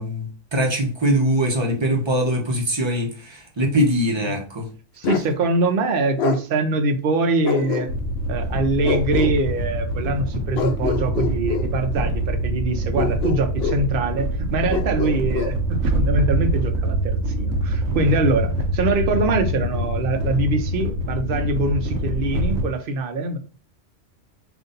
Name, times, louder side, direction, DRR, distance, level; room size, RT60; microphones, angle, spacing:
voice 1, 0.0-4.7, equal, 25° right, 1 dB, 0.8 m, -22 dB
Bark, 5.0-5.3 6.2-6.4 7.4-8.2 8.8-9.4 10.5-11.7 13.0-13.9 14.7-15.6, left 7 dB, 65° left, 0.8 m, -26 dB
voice 2, 5.0-7.9 8.3-23.4, right 2 dB, 55° right, 6 dB, 0.8 m, -23 dB
sound 1, 7.9-22.6, right 1 dB, 90° right, 1.1 m, -25 dB
3.9 x 2.6 x 3.8 m, 0.37 s
omnidirectional pair, 1.2 m